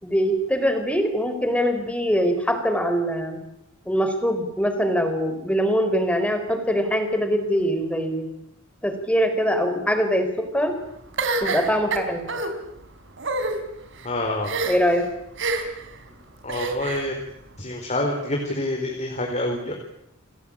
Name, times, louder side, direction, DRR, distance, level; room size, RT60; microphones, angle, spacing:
voice 1, 0.0-3.4 3.9-8.3 8.8-10.8 11.4-12.2 14.6-15.1, equal, 5° left, 7 dB, 4.3 m, -23 dB
sound 1, 11.2-12.5 13.2-13.5 14.4-14.9 15.4-15.8 16.5-17.1, right 3 dB, 60° right, 4.0 m, -26 dB
voice 2, 14.0-14.5 16.4-17.2 17.6-19.7, left 1 dB, 35° left, 2 dB, 4.2 m, -27 dB
29.5 x 20.5 x 8.8 m, 0.79 s
head